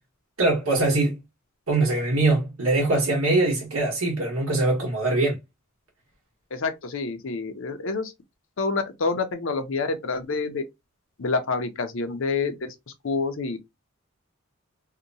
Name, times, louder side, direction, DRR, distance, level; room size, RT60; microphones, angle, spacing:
voice 1, 0.4-1.2 1.7-5.4, right 2 dB, 85° right, 1.3 m, -22 dB
voice 2, 6.5-8.1 8.6-10.6 11.2-12.5 13.0-13.6, left 4 dB, 65° left, 0.6 m, -27 dB
2.8 x 2.1 x 2.6 m
head